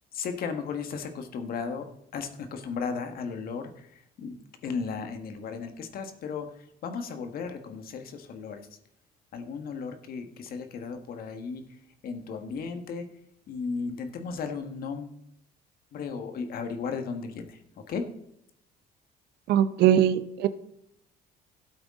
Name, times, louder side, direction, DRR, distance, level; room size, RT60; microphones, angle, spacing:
voice 1, 0.1-1.9 2.1-6.5 6.8-8.6 9.3-11.6 12.0-13.1 13.5-15.2 15.9-17.6 17.9-18.1, left 5 dB, 60° left, 7 dB, 1.5 m, -35 dB
voice 2, 19.5-20.5, right 10 dB, 75° right, 13 dB, 0.8 m, -21 dB
13.0 x 8.3 x 3.7 m, 0.75 s
cardioid pair, 110°, 17 cm